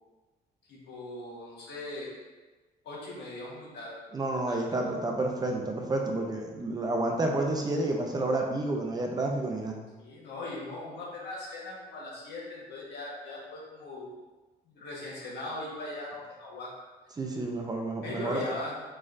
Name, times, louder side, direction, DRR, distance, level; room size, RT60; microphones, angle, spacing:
voice 1, 0.7-2.2 2.8-4.0 4.3-4.6 10.0-14.1 14.7-16.7 18.0-18.8, left 2 dB, 85° left, -4 dB, 1.3 m, -39 dB
voice 2, 4.1-9.8 17.2-18.4, right 2 dB, 25° right, 1 dB, 0.5 m, -30 dB
4.4 x 4.1 x 2.5 m, 1.2 s
cardioid pair, 145°, 17 cm